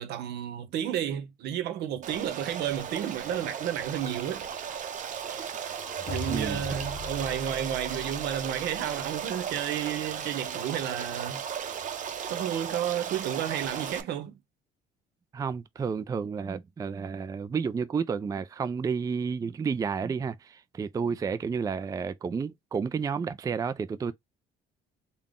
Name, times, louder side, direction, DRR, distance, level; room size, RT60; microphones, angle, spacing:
voice 1, 0.0-4.5 6.1-11.4 12.3-14.4, right 10 dB, 80° right, 0.9 m, -32 dB
Stream, 2.0-14.0, right 8 dB, 50° right, 0.8 m, -36 dB
sound 1, 5.7-9.7, left 2 dB, 35° left, 0.9 m, -41 dB
voice 2, 6.3-6.6 15.3-24.1, right 6 dB, 20° right, 0.4 m, -31 dB
3.6 x 2.3 x 3.7 m
cardioid pair, 110°, 17 cm